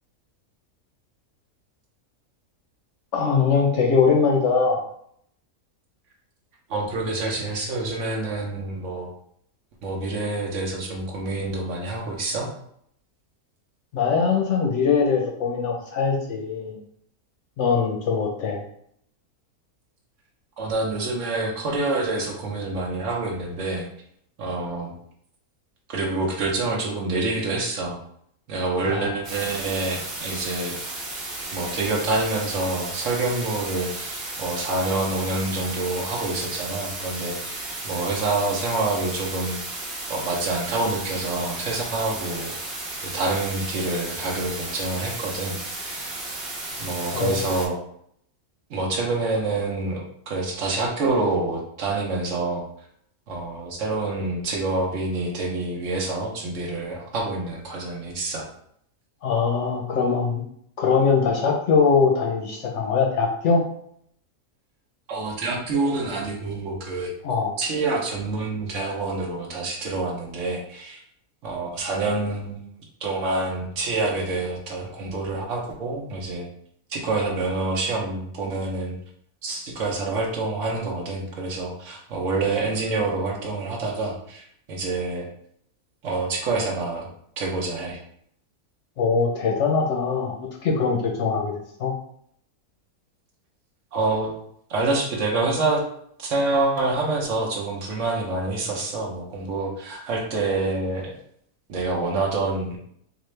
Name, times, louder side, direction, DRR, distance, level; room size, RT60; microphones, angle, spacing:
voice 1, 3.1-4.8 13.9-16.8 17.6-18.6 28.8-29.1 47.1-47.4 59.2-60.4 60.8-63.6 67.2-67.6 89.0-91.9, left 5 dB, 65° left, 1 dB, 0.9 m, -22 dB
voice 2, 6.7-9.1 9.8-12.5 20.6-23.9 24.4-24.9 25.9-28.0 28.5-30.8 31.5-34.1 34.4-37.4 37.8-39.6 40.1-42.8 43.0-46.1 46.8-47.8 48.7-52.6 53.3-58.5 65.1-67.1 67.6-71.0 71.4-72.6 73.0-76.5 76.9-78.9 79.4-85.3 86.0-87.1 87.4-88.0 93.9-94.3 94.7-95.8 96.2-101.1 101.7-102.8, right 3 dB, 60° right, 0 dB, 1.0 m, -27 dB
sound 1, 29.2-47.7, right 2 dB, 40° right, 1.1 m, -34 dB
4.0 x 2.5 x 3.2 m, 0.67 s
omnidirectional pair, 1.5 m